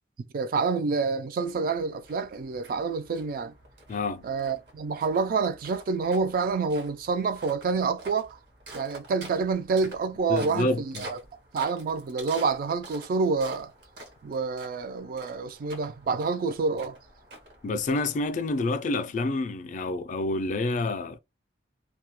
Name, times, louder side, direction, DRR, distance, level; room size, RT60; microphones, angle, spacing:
voice 1, 0.3-3.5 4.2-8.4 8.7-11.2 11.5-13.7 14.2-17.0, right 4 dB, 55° right, 0.3 m, -28 dB
sound 1, 1.4-19.1, right 1 dB, 70° right, 0.9 m, -48 dB
voice 2, 3.9-4.3 10.3-11.1 17.6-21.2, left 2 dB, 45° left, 0.3 m, -28 dB
2.3 x 2.1 x 2.8 m
head